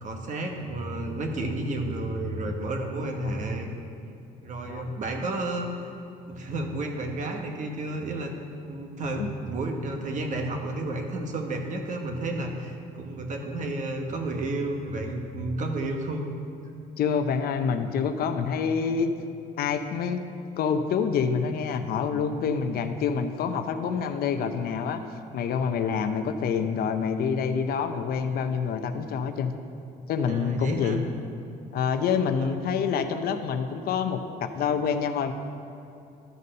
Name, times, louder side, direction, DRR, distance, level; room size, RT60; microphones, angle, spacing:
voice 1, 0.0-3.7 4.4-5.7 6.3-8.3 8.7-16.2 30.3-31.0 32.4-32.6, right 2 dB, 50° right, 3 dB, 1.2 m, -31 dB
voice 2, 17.0-19.1 19.6-20.2 20.6-25.0 25.3-29.5 30.1-31.0 31.7-35.3, left 6 dB, 65° left, 8 dB, 0.6 m, -27 dB
12.5 x 4.1 x 6.5 m, 2.7 s
cardioid pair, 110°, 17 cm